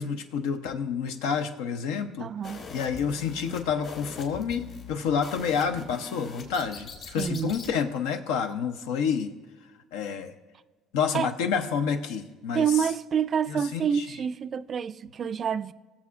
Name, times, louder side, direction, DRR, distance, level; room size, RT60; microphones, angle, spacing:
voice 1, 0.0-2.3 2.7-9.3 9.9-10.3 10.9-12.9 13.5-14.1, left 6 dB, 90° left, 0.8 m, -29 dB
voice 2, 2.2-2.7 7.2-7.6 11.1-11.3 12.5-15.7, right 7 dB, 45° right, 0.3 m, -27 dB
sound 1, 2.4-7.7, left 5 dB, 55° left, 2.7 m, -42 dB
20.0 x 7.3 x 2.5 m
supercardioid pair, 90°, 0 cm